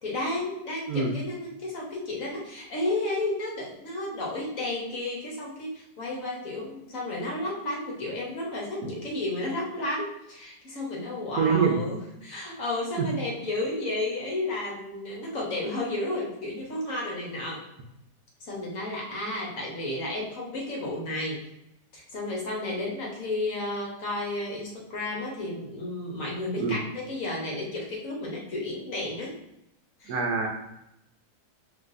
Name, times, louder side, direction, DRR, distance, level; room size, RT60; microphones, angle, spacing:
voice 1, 0.0-17.6 18.4-21.4 21.9-29.3 30.0-30.2, left 2 dB, 55° left, -3 dB, 1.3 m, -32 dB
voice 2, 11.4-11.8 13.0-13.1 26.6-26.8 30.1-30.5, right 5 dB, 70° right, 1 dB, 1.0 m, -24 dB
5.8 x 3.1 x 2.6 m, 0.85 s
omnidirectional pair, 1.9 m